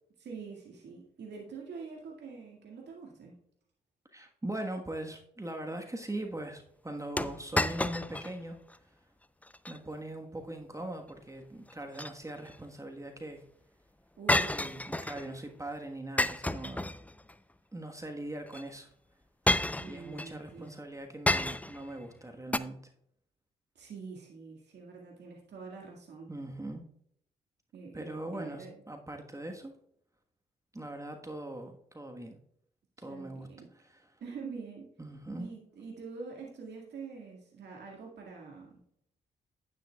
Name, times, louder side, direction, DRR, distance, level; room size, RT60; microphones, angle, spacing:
voice 1, 0.2-3.3 14.2-14.6 19.8-20.7 23.8-26.3 27.7-28.8 33.1-33.7 34.2-34.9 35.3-38.8, right 5 dB, 60° right, -1 dB, 2.0 m, -45 dB
voice 2, 4.1-8.6 9.7-13.4 14.5-16.9 17.7-18.9 19.9-22.8 26.3-26.8 27.9-29.7 30.7-32.4 33.0-34.2 35.0-35.5, right 1 dB, 15° right, 3 dB, 1.3 m, -41 dB
sound 1, 7.2-8.3 8.7-8.8 9.4-9.8 11.7-12.6 14.3-15.3 16.2-17.3 18.5-18.6 19.5-20.3 21.3-21.9 22.5-22.6, left 1 dB, 5° left, 0.5 m, -30 dB
10.0 x 10.0 x 2.3 m, 0.71 s
hypercardioid pair, 40°, 20 cm